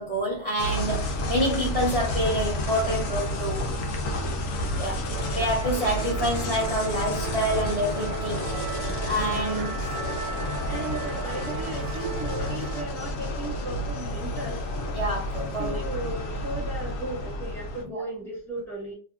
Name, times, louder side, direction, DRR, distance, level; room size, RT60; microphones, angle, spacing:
voice 1, 0.0-3.6 4.8-5.1 5.3-8.4 9.1-9.8 14.9-15.8 17.9-18.0, equal, 70° right, 0.3 m, -27 dB
sound 1, 0.6-17.8, left 1 dB, 75° left, 0.7 m, -30 dB
Musical instrument, 5.0-12.9, right 5 dB, 90° right, 1.3 m, -36 dB
voice 2, 10.7-14.6 15.6-18.9, right 2 dB, ahead, 1.0 m, -36 dB
2.7 x 2.5 x 2.3 m
omnidirectional pair, 1.9 m